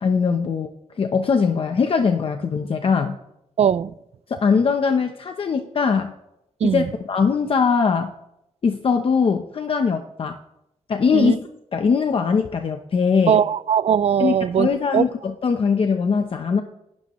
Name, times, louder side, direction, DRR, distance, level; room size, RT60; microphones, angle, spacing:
voice 1, 0.0-0.7 1.0-3.2 4.3-6.1 6.6-8.1 8.6-10.4 10.9-13.4 14.2-16.6, left 5 dB, 50° left, 0.8 m, -21 dB
voice 2, 3.6-3.9 6.6-6.9 11.1-11.4 13.3-14.7 14.9-15.0, right 8 dB, 60° right, 0.4 m, -19 dB
26.5 x 12.0 x 3.1 m
wide cardioid pair, 165°, 12 cm